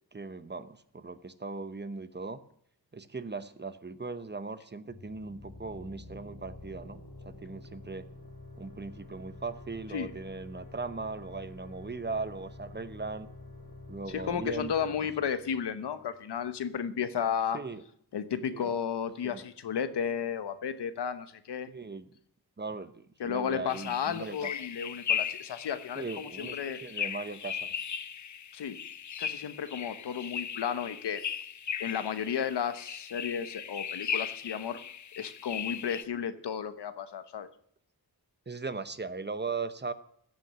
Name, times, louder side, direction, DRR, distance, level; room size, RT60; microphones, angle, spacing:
voice 1, 0.1-2.4 2.9-8.0 8.6-13.3 13.9-15.1 17.5-17.8 18.5-18.7 19.2-19.4 21.7-22.1 22.6-24.5 26.0-27.8 38.5-39.9, right 4 dB, 25° right, 12 dB, 0.9 m, -39 dB
sound 1, 4.9-16.3, left 2 dB, 70° left, 4.2 m, -48 dB
voice 2, 14.1-17.6 18.1-21.7 23.2-26.8 28.5-28.8 29.2-31.2 31.8-34.8 35.2-37.5, left 7 dB, 85° left, 11 dB, 1.0 m, -33 dB
sound 2, 23.7-36.0, left 7 dB, 45° left, 0.6 m, -37 dB
15.5 x 6.5 x 7.4 m, 0.66 s
cardioid pair, 60°, 40 cm